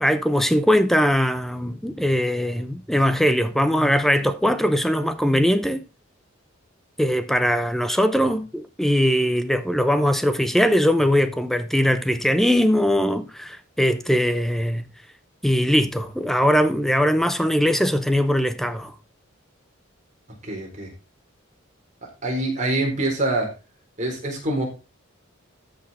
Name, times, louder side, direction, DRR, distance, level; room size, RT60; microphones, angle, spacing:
voice 1, 0.0-5.8 7.0-14.8 15.4-18.9, equal, ahead, 0.7 m, -21 dB
voice 2, 20.4-20.9 22.2-23.5 24.0-24.7, right 2 dB, 35° right, 4.1 m, -25 dB
13.5 x 6.5 x 4.2 m
head